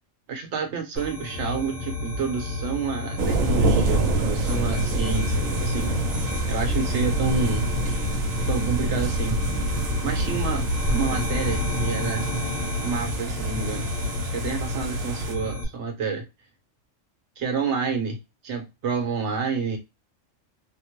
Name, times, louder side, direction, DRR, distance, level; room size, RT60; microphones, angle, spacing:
voice 1, 0.3-5.9 6.5-7.7 8.5-9.4 10.0-12.3 12.8-13.9 14.2-16.3 17.4-18.2 18.4-19.8, right 5 dB, 65° right, 1.0 m, -29 dB
sound 1, 1.0-15.6, left 2 dB, 35° left, 1.3 m, -30 dB
sound 2, 3.2-15.3, right 2 dB, 90° right, 1.0 m, -27 dB
2.8 x 2.1 x 2.9 m
omnidirectional pair, 1.3 m